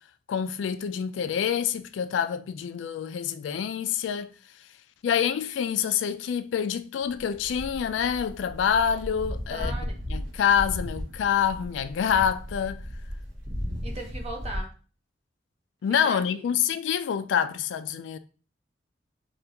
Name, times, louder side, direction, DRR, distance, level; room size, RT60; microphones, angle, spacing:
voice 1, 0.3-4.3 5.0-9.7 10.1-12.8 15.8-18.2, left 8 dB, 80° left, 0.3 m, -26 dB
sound 1, 7.1-14.6, equal, 85° right, 1.1 m, -36 dB
voice 2, 9.5-9.9 13.8-14.7 16.0-16.7, right 2 dB, 35° right, 0.7 m, -38 dB
3.3 x 2.4 x 2.9 m
head